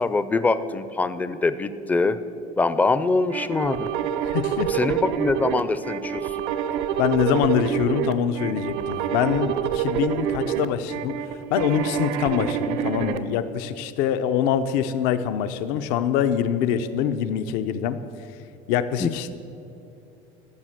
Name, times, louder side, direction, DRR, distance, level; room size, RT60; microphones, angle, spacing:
voice 1, 0.0-2.2 2.6-3.9 4.7-6.2 19.0-19.1, left 3 dB, 10° left, 13 dB, 0.4 m, -23 dB
sound 1, 3.3-13.2, right 9 dB, 75° right, 0.7 m, -27 dB
voice 2, 4.2-4.7 7.0-11.1 11.5-18.0 18.7-19.3, left 9 dB, 75° left, 11 dB, 0.7 m, -24 dB
13.5 x 6.5 x 7.6 m, 2.7 s
cardioid pair, 145°, 16 cm